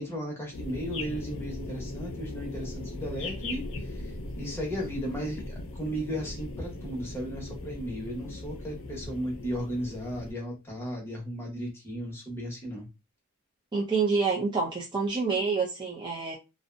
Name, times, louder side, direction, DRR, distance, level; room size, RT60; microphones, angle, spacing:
voice 1, 0.0-4.1 4.4-12.9, equal, 10° left, -1 dB, 1.0 m, -35 dB
sound 1, 0.5-10.3, left 2 dB, 65° left, 0.5 m, -39 dB
voice 2, 13.7-16.4, right 4 dB, 20° right, -2 dB, 0.5 m, -27 dB
2.6 x 2.1 x 2.5 m, 0.25 s
head